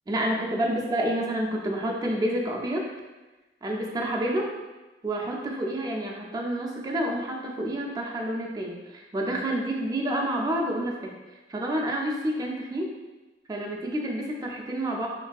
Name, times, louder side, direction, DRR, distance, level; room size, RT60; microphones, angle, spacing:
voice 1, 0.1-2.9 3.6-4.5 5.0-11.1 11.5-12.9 13.5-15.1, right 1 dB, 20° right, 0 dB, 0.4 m, -29 dB
3.1 x 2.5 x 2.3 m, 1.2 s
head